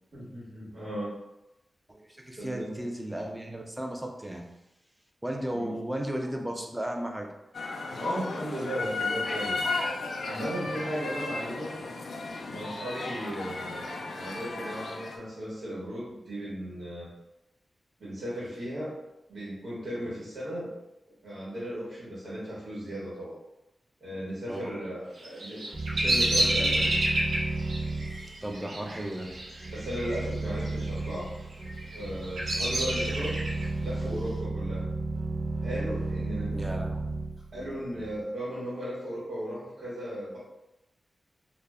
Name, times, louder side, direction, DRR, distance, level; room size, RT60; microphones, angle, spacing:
voice 1, 0.1-1.1 2.4-2.7 5.5-5.7 7.9-9.7 10.2-11.7 12.5-17.1 18.0-18.9 19.3-20.7 21.2-23.4 24.0-25.6 26.0-27.0 29.7-31.4 31.9-33.4 33.8-34.9 35.6-36.6 37.5-40.4, equal, 75° right, -8 dB, 1.0 m, -36 dB
voice 2, 1.9-4.5 5.2-7.3 24.5-24.7 28.4-29.3 36.5-37.2, right 1 dB, 10° right, 2 dB, 0.4 m, -35 dB
sound 1, 7.5-15.2, left 3 dB, 85° left, 0.3 m, -34 dB
Bird vocalization bird call bird song, 25.2-30.2 30.5-31.1 31.7-33.7, right 1 dB, 90° right, 0.6 m, -29 dB
sound 2, 25.7-38.2, right 2 dB, 40° right, 0.8 m, -33 dB
2.2 x 2.1 x 3.4 m, 0.91 s
wide cardioid pair, 100°, 0 cm